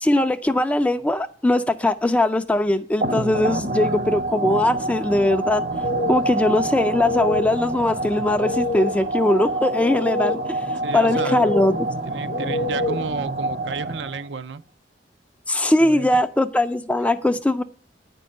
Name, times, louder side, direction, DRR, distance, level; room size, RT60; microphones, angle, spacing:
voice 1, 0.0-5.6 6.1-11.9 15.5-17.6, left 1 dB, 10° left, 0.3 m, -20 dB
sound 1, 3.0-14.4, right 2 dB, 50° right, 0.8 m, -27 dB
sound 2, 5.8-13.2, left 2 dB, 55° left, 0.7 m, -29 dB
voice 2, 10.8-11.6 12.1-14.6 15.8-16.2, right 5 dB, 80° right, 0.5 m, -32 dB
9.2 x 5.4 x 7.5 m
head